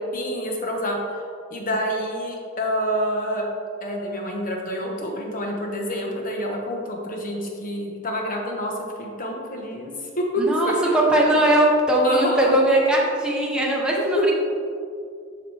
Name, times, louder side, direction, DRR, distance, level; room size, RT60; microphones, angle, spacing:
voice 1, 0.1-1.0 1.5-3.5 3.8-10.7 11.3-11.4 12.0-12.5 14.1-14.3, equal, 40° left, 0 dB, 1.1 m, -27 dB
voice 2, 10.4-14.3, right 1 dB, 5° right, -3 dB, 1.0 m, -20 dB
7.4 x 6.1 x 3.4 m, 2.3 s
head